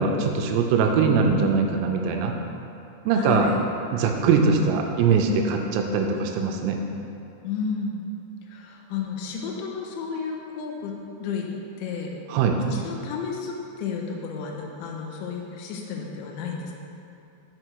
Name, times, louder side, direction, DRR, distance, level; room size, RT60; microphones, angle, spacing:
voice 1, 0.0-2.3 3.1-3.5 3.9-6.8 12.3-12.6, right 5 dB, 85° right, 3 dB, 3.3 m, -22 dB
voice 2, 3.1-3.6 7.4-8.1 8.5-11.5 11.8-12.1 12.7-16.7, left 6 dB, 80° left, 0 dB, 2.8 m, -32 dB
6.5 x 6.0 x 4.6 m, 2.7 s
omnidirectional pair, 5.9 m